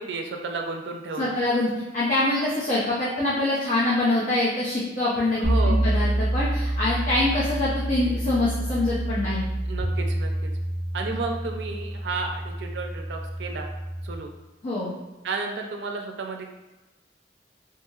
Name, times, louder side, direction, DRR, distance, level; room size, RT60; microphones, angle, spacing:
voice 1, 0.0-1.4 5.4-5.8 9.6-10.5 10.9-13.7 14.0-14.3 15.2-16.5, right 3 dB, 75° right, 3 dB, 0.4 m, -32 dB
voice 2, 1.2-9.4 14.6-14.9, left 2 dB, 50° left, -8 dB, 0.6 m, -25 dB
sound 1, 5.4-14.2, right 1 dB, ahead, 0.5 m, -27 dB
2.9 x 2.8 x 2.3 m, 1.1 s
head